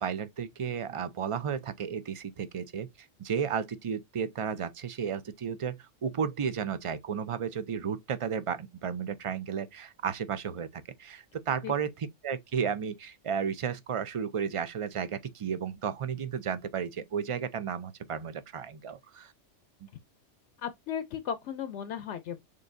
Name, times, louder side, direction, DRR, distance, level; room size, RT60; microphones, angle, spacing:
voice 1, 0.0-2.9 3.2-19.3 19.8-19.9, right 7 dB, 55° right, 0.3 m, -33 dB
voice 2, 20.6-22.4, left 8 dB, 70° left, 0.8 m, -35 dB
6.6 x 2.6 x 2.5 m
omnidirectional pair, 1.3 m